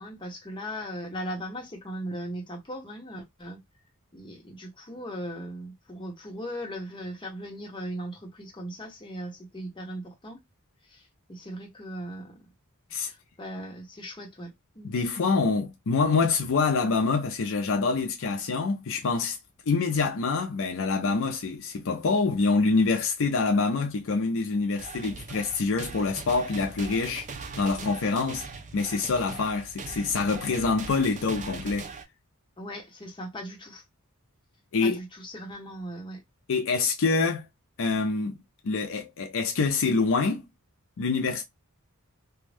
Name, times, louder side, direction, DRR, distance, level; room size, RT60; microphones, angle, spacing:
voice 1, 0.0-3.6 4.1-10.4 10.9-11.0 11.3-12.4 13.1-14.9 32.6-33.8 34.8-36.2, equal, 20° left, 1.0 m, -38 dB
voice 2, 14.8-19.4 19.7-27.3 27.6-28.4 28.7-31.9 34.7-35.0 36.5-37.4 37.8-38.4 38.6-40.4 41.0-41.4, left 4 dB, 65° left, 0.5 m, -26 dB
sound 1, 24.8-32.0, right 4 dB, 35° right, 0.5 m, -41 dB
2.6 x 2.2 x 3.3 m
head